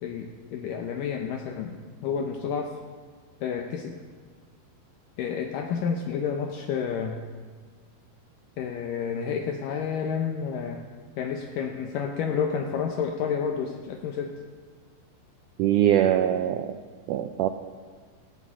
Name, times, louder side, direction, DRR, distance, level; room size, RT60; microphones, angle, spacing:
voice 1, 0.0-2.7 3.4-4.0 5.2-7.3 8.6-10.8 11.2-14.3, left 6 dB, 75° left, 3 dB, 2.3 m, -30 dB
voice 2, 15.6-16.7 17.1-17.5, right 11 dB, 85° right, 8 dB, 1.8 m, -22 dB
18.0 x 14.5 x 3.7 m, 1.5 s
omnidirectional pair, 4.2 m